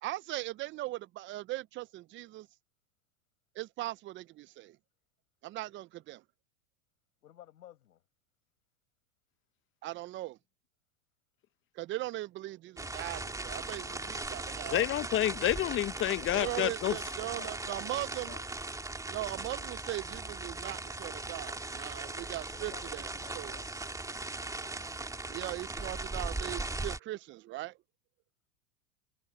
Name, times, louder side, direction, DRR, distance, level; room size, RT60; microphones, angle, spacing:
voice 1, 0.0-2.5 3.6-4.8 5.4-6.2 9.8-10.4 11.8-14.9 16.3-18.4 19.1-23.5 25.3-27.8, right 17 dB, 25° right, 0.6 m, -39 dB
voice 2, 7.2-8.0 16.2-18.4 22.5-23.7, left 12 dB, 85° left, 6.4 m, -54 dB
sound 1, 12.8-27.0, right 2 dB, 5° right, 2.4 m, -39 dB
voice 3, 14.7-17.0, left 13 dB, 25° left, 0.8 m, -29 dB
hypercardioid pair, 110°, 45 cm